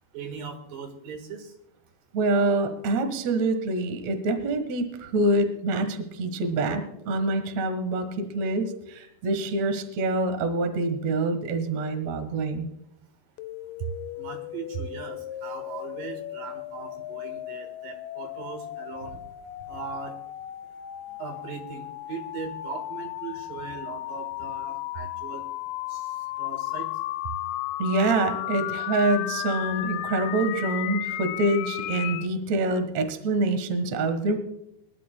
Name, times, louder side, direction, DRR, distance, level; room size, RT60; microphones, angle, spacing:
voice 1, 0.1-1.5 14.2-19.2 19.7-20.2 21.2-25.5 25.9-26.1 26.4-26.9, right 5 dB, 75° right, 6 dB, 3.1 m, -39 dB
voice 2, 2.1-12.7 27.8-34.4, right 2 dB, 55° right, 8 dB, 2.4 m, -26 dB
sound 1, 13.4-32.3, left 15 dB, 80° left, 2.0 m, -35 dB
25.0 x 12.0 x 2.2 m, 0.81 s
omnidirectional pair, 4.1 m